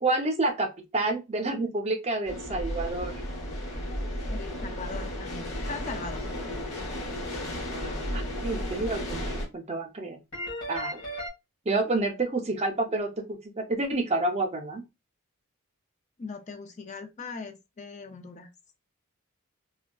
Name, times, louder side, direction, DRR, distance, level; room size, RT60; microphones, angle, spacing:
voice 1, 0.0-3.1 7.7-10.2 10.7-11.0 11.7-14.8, right 2 dB, 30° right, 0.5 m, -29 dB
sound 1, 2.2-9.5, equal, 75° left, 1.0 m, -34 dB
voice 2, 4.3-6.3 16.2-18.5, left 4 dB, 35° left, 0.3 m, -40 dB
sound 2, 5.5-7.6 10.3-11.3, equal, 55° left, 1.7 m, -39 dB
3.4 x 2.2 x 2.2 m
head